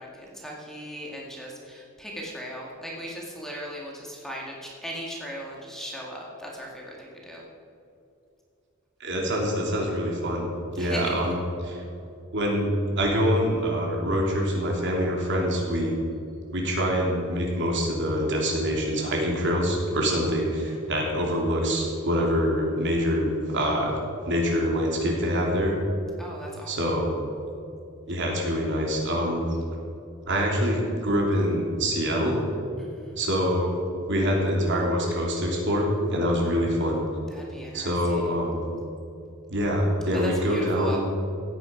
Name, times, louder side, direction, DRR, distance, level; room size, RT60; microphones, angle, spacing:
voice 1, 0.0-7.4 10.8-11.1 26.2-26.9 32.8-33.2 37.3-38.3 40.2-41.0, equal, ahead, -3 dB, 1.9 m, -38 dB
voice 2, 9.0-10.5 10.8-11.4 11.6-11.8 12.3-15.9 16.5-23.9 24.2-25.7 26.7-27.1 28.1-29.4 30.3-32.4 33.2-33.7 34.1-37.0 37.7-38.6 39.5-41.0, equal, 55° right, -1 dB, 3.1 m, -25 dB
16.0 x 9.5 x 5.2 m, 2.6 s
head